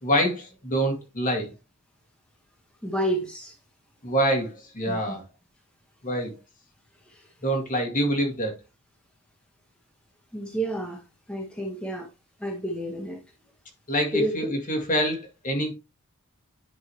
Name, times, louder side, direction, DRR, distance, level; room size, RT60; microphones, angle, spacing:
voice 1, 0.0-1.5 4.0-4.5 4.7-5.2 6.0-6.3 7.4-8.5 13.9-15.7, equal, 40° left, 2.2 m, -25 dB
voice 2, 2.8-3.5 4.9-5.1 7.1-7.3 10.3-11.0 11.3-12.1 12.4-13.2 14.1-14.3, right 1 dB, 5° left, 1.4 m, -29 dB
10.5 x 4.9 x 3.1 m
head